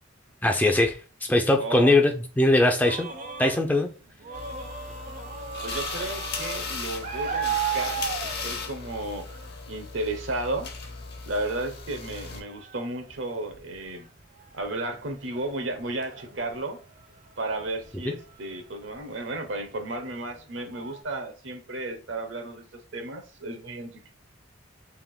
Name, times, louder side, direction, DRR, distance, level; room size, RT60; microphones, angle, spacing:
voice 1, 0.4-1.0 1.3-3.1 3.4-3.9 18.1-18.2, left 2 dB, 10° left, 0.4 m, -21 dB
voice 2, 1.6-2.0 5.6-9.3 9.7-10.7 11.3-14.1 14.5-16.8 17.4-24.1, right 2 dB, 70° right, 0.9 m, -33 dB
sound 1, 2.7-9.5 9.9-10.0 10.4-10.8 11.2-11.3 11.8-21.0, right 7 dB, 40° right, 0.6 m, -37 dB
sound 2, 4.3-12.4, left 4 dB, 55° left, 0.9 m, -36 dB
3.5 x 2.5 x 3.7 m
head